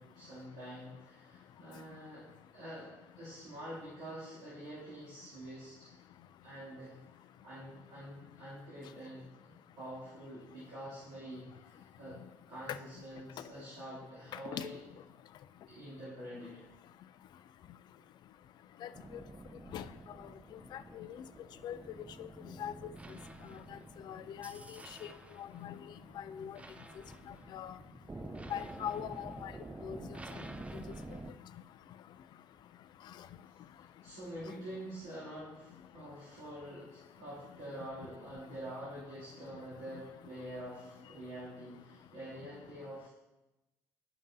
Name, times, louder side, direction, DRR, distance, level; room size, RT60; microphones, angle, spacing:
voice 1, 0.0-2.3 2.5-5.9 6.4-12.2 12.5-14.8 15.7-16.7 33.5-33.6 34.0-43.1, right 1 dB, 70° right, -11 dB, 2.6 m, -46 dB
sound 1, 18.9-31.3, right 2 dB, 15° right, 0.5 m, -49 dB
voice 2, 20.7-21.2 21.6-21.8 22.2-22.3 22.6-22.9 24.1-25.1 25.4-25.7 26.2-26.6 27.5-27.8 28.5-29.5 29.8-30.0, left 10 dB, 50° left, 14 dB, 0.4 m, -41 dB
11.0 x 5.2 x 2.6 m, 1.0 s
hypercardioid pair, 60°, 9 cm